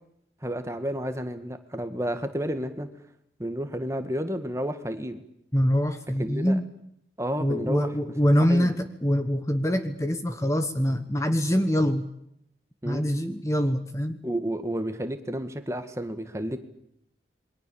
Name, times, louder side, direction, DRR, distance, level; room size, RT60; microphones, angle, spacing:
voice 1, 0.4-2.9 3.4-5.2 6.2-6.6 7.2-7.9 8.5-8.7 12.8-13.0 14.2-16.6, equal, 15° right, 8 dB, 1.8 m, -31 dB
voice 2, 5.5-6.7 7.4-12.1 12.8-14.2, equal, 15° left, 8 dB, 1.4 m, -24 dB
28.5 x 22.5 x 7.1 m, 0.76 s
head